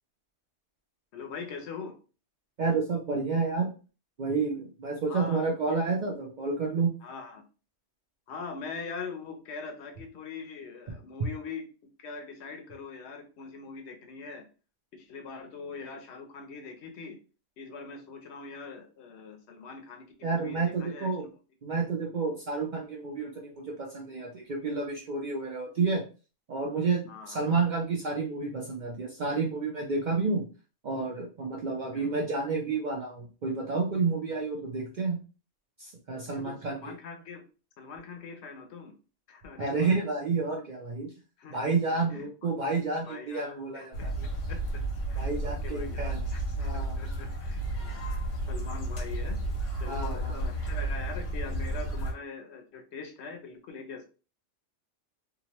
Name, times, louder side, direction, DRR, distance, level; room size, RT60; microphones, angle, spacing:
voice 1, 1.1-1.9 5.1-5.5 7.0-7.4 8.3-11.7 12.0-14.4 14.9-17.2 17.6-21.3 27.0-27.5 31.9-32.1 36.3-37.4 37.8-38.9 39.3-39.9 41.4-41.7 42.1-42.5 43.1-44.8 45.1-48.1 48.5-49.4 49.8-54.1, left 4 dB, 70° left, 4 dB, 0.8 m, -42 dB
voice 2, 2.6-3.7 4.2-6.9 20.2-21.2 21.6-26.0 26.5-30.4 30.8-35.2 35.8-36.8 39.6-41.1 41.5-44.1 45.2-46.3 46.6-46.9 49.9-50.4, right 4 dB, 55° right, -1 dB, 0.5 m, -30 dB
sound 1, 43.9-52.1, right 1 dB, 90° left, 1.2 m, -32 dB
2.8 x 2.1 x 2.9 m, 0.35 s
omnidirectional pair, 1.2 m